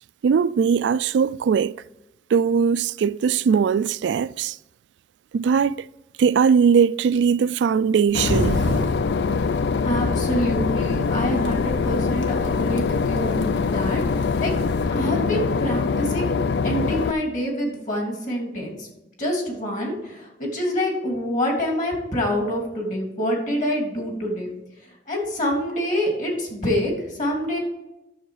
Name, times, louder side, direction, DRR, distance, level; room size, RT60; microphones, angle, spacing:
voice 1, 0.2-1.7 2.3-4.6 5.3-5.8 6.2-8.6, right 6 dB, 75° right, 0.3 m, -20 dB
sound 1, 8.1-14.9, equal, 90° left, 1.7 m, -32 dB
Boat Water vehicle / Engine, 8.1-17.1, left 5 dB, 65° left, 0.4 m, -23 dB
voice 2, 9.8-14.5 14.9-16.3 16.6-18.9 19.2-24.5 25.1-27.6, equal, 45° left, 3.0 m, -26 dB
11.0 x 7.1 x 4.9 m
head